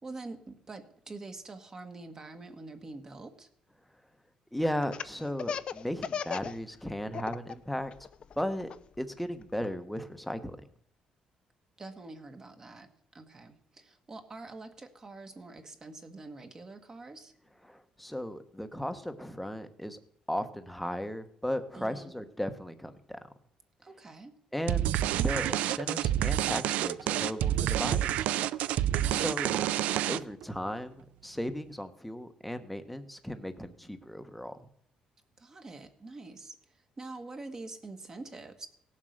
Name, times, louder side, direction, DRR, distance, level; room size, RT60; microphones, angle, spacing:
voice 1, 0.0-3.5 11.8-17.3 21.7-22.1 23.8-24.3 28.6-29.3 35.4-38.7, right 3 dB, 25° right, 6 dB, 1.5 m, -46 dB
voice 2, 4.5-8.1 8.4-8.7 9.0-10.6 17.7-20.0 20.3-23.2 24.5-24.9 25.2-28.3 29.1-29.7 30.1-34.6, equal, ahead, 9 dB, 1.1 m, -36 dB
Laughter, 4.8-6.6 6.9-7.5 7.9-9.7, left 7 dB, 50° left, 0.6 m, -36 dB
sound 1, 24.7-30.4, right 12 dB, 90° right, 0.5 m, -28 dB
17.0 x 7.5 x 6.5 m, 0.70 s
cardioid pair, 125°, 2 cm